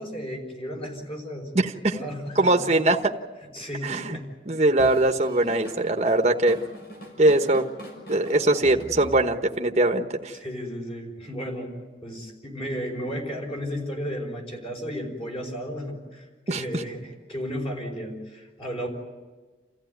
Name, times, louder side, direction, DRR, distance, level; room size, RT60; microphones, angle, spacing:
voice 1, 0.0-1.5 1.9-2.7 3.5-4.3 10.3-11.7 12.0-18.9, equal, 35° left, 2 dB, 5.3 m, -34 dB
voice 2, 1.5-2.0 2.4-3.1 3.8-4.2 4.5-6.6 7.2-7.6 8.1-10.3 16.5-16.8, right 2 dB, 40° right, 5 dB, 1.2 m, -21 dB
Drum kit / Drum, 4.8-9.6, equal, 65° left, 6.3 m, -42 dB
29.5 x 15.0 x 9.3 m, 1.3 s
head